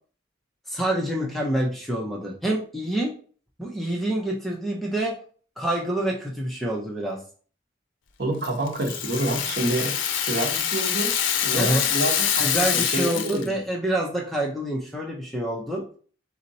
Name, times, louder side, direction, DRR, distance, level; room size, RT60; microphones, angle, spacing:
voice 1, 0.7-3.1 3.6-5.2 5.6-7.2 11.6-11.8 12.4-15.8, right 1 dB, ahead, 0 dB, 0.8 m, -27 dB
voice 2, 8.2-10.0 10.2-11.1 11.4-13.5, right 2 dB, 55° right, 2 dB, 1.1 m, -28 dB
Rattle (instrument), 8.4-13.5, left 9 dB, 80° left, 0.6 m, -25 dB
4.2 x 2.9 x 4.1 m, 0.42 s
head